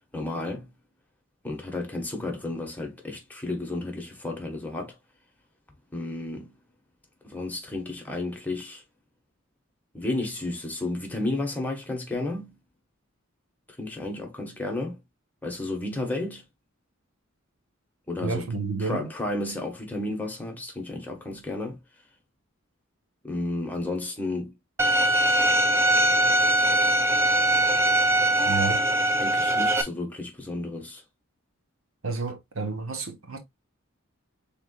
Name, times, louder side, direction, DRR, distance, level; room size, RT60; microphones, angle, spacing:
voice 1, 0.1-0.7 1.4-5.0 5.9-6.5 7.2-8.8 9.9-12.6 13.8-15.0 15.4-16.4 18.1-18.5 18.8-21.8 23.2-24.6 25.1-25.4 29.2-31.0, left 2 dB, 10° left, 1.5 m, -32 dB
voice 2, 18.2-19.1 28.4-28.8 32.0-33.4, right 4 dB, 80° right, 1.4 m, -30 dB
Bowed string instrument, 24.8-29.8, right 1 dB, 10° right, 0.6 m, -21 dB
4.8 x 3.9 x 2.5 m
head